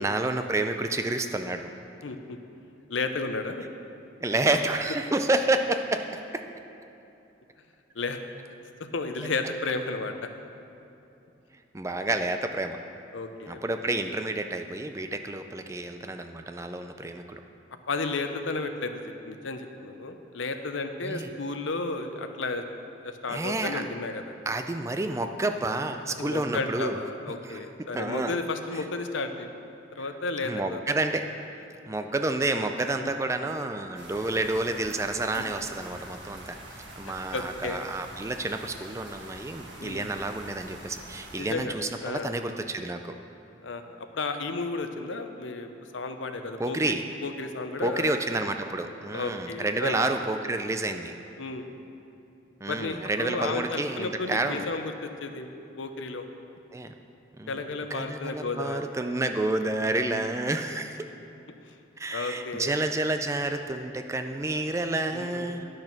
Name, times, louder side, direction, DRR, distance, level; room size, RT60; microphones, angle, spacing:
voice 1, 0.0-1.7 4.2-6.4 11.7-12.8 13.5-17.4 21.0-21.3 23.3-23.8 24.5-27.0 27.4-28.4 28.7-28.8 30.0-30.1 30.4-31.3 31.9-36.6 37.0-43.1 46.6-47.0 47.8-51.1 52.6-54.7 56.7-56.9 57.4-57.6 57.9-61.1 62.0-65.7, right 2 dB, 15° right, 7 dB, 0.3 m, -29 dB
voice 2, 2.0-2.4 2.9-3.6 7.9-8.2 8.8-10.1 13.1-13.6 17.9-18.9 19.2-22.6 23.0-24.3 26.2-29.5 29.9-30.8 37.0-37.8 39.8-40.1 41.4-41.7 42.0-42.3 43.6-45.7 45.9-48.1 49.1-50.0 51.4-51.7 52.7-55.5 55.8-56.2 57.5-58.8 62.1-62.7 65.1-65.5, left 3 dB, 85° left, 7 dB, 0.7 m, -33 dB
sound 1, 34.0-41.4, right 1 dB, 75° right, 1.5 m, -45 dB
10.5 x 6.5 x 5.9 m, 2.8 s
head